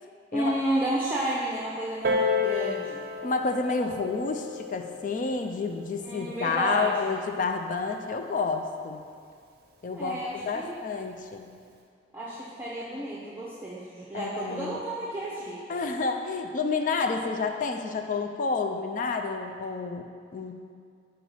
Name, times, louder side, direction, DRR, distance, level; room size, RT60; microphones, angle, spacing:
voice 1, 0.3-3.0 6.0-7.1 9.9-10.7 12.1-15.8, right 1 dB, 10° right, -7 dB, 0.6 m, -31 dB
Piano, 2.0-7.2 8.1-8.2, left 4 dB, 55° right, 0.6 m, -32 dB
voice 2, 3.2-9.0 9.8-11.5 14.1-14.8 15.7-20.5, left 4 dB, 45° left, 5 dB, 0.4 m, -30 dB
5.0 x 4.4 x 5.5 m, 2.2 s
head